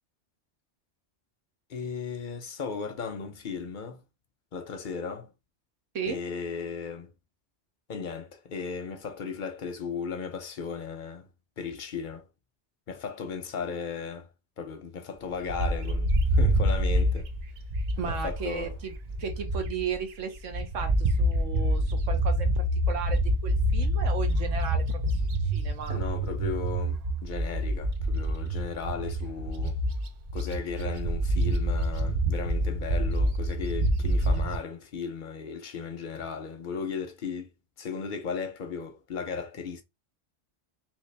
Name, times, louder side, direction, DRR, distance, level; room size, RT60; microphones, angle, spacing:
voice 1, 1.7-4.0 4.5-5.3 6.1-7.1 7.9-11.3 11.6-12.3 12.9-14.3 14.6-17.3 18.0-18.8 25.9-29.8 30.3-37.5 37.8-39.8, left 5 dB, 55° left, 0.6 m, -36 dB
Bird, 15.5-20.0 20.3-34.5, right 1 dB, 65° right, 0.4 m, -27 dB
voice 2, 18.0-18.9 19.2-26.0, right 6 dB, 85° right, 1.2 m, -35 dB
3.1 x 2.8 x 3.2 m
omnidirectional pair, 1.2 m